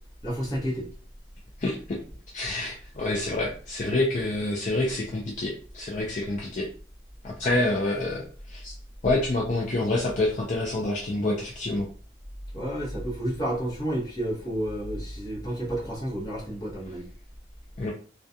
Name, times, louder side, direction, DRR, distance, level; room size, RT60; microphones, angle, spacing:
voice 1, 0.2-0.9 12.5-17.1, right 1 dB, 20° left, -5 dB, 0.8 m, -30 dB
voice 2, 1.6-2.0 2.3-6.7 7.2-8.7 9.0-11.9 17.8-17.9, left 2 dB, 45° left, -2 dB, 0.4 m, -27 dB
2.3 x 2.3 x 2.6 m, 0.41 s
head